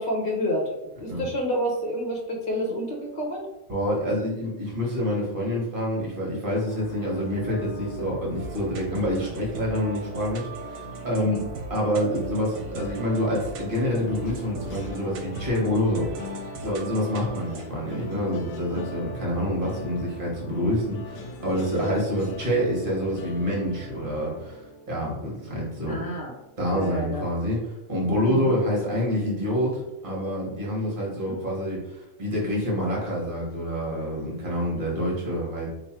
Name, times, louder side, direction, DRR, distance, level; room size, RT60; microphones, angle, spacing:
voice 1, 0.0-3.5 11.1-11.4 21.7-22.0 25.9-26.3 26.7-27.2 28.2-28.4, equal, 40° left, -1 dB, 1.0 m, -29 dB
voice 2, 3.7-11.4 11.7-24.6 24.9-26.1 26.6-35.7, equal, 40° right, -3 dB, 1.4 m, -27 dB
sound 1, 6.6-24.7, equal, 60° left, 0.6 m, -43 dB
sound 2, 8.4-17.6, right 3 dB, 80° right, 1.0 m, -39 dB
sound 3, 11.9-27.0 27.4-27.7 28.0-28.2, left 5 dB, 80° left, 1.0 m, -43 dB
3.2 x 2.5 x 4.3 m, 0.93 s
omnidirectional pair, 1.4 m